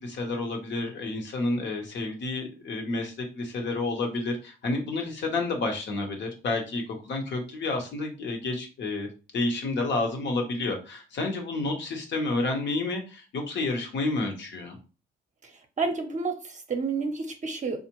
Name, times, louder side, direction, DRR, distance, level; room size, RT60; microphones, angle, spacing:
voice 1, 0.0-9.1 9.3-14.8, left 2 dB, 65° left, 3 dB, 1.1 m, -30 dB
voice 2, 15.4-17.8, right 4 dB, 40° right, 4 dB, 0.6 m, -30 dB
4.3 x 2.5 x 3.0 m, 0.34 s
cardioid pair, 90°, 20 cm